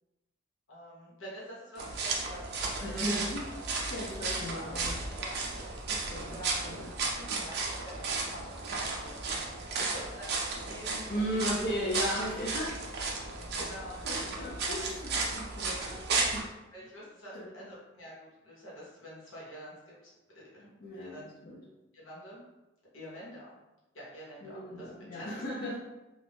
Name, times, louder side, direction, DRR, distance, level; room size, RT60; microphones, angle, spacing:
voice 1, 0.7-3.0 5.2-5.6 6.2-6.7 7.1-10.3 10.7-11.4 13.2-14.1 14.6-14.8 16.7-20.7 21.0-21.3 21.9-22.4 22.9-23.5 23.9-25.4, equal, 75° left, -6 dB, 1.2 m, -47 dB
sound 1, 1.8-16.4, right 3 dB, 55° right, 0.5 m, -34 dB
voice 2, 2.8-5.1 5.4-5.6 5.9-6.4 6.6-6.9 11.1-12.8 14.0-16.5 17.3-17.7 20.8-21.6 24.4-25.8, equal, 45° left, -6 dB, 0.5 m, -36 dB
2.5 x 2.4 x 3.4 m, 1.0 s
head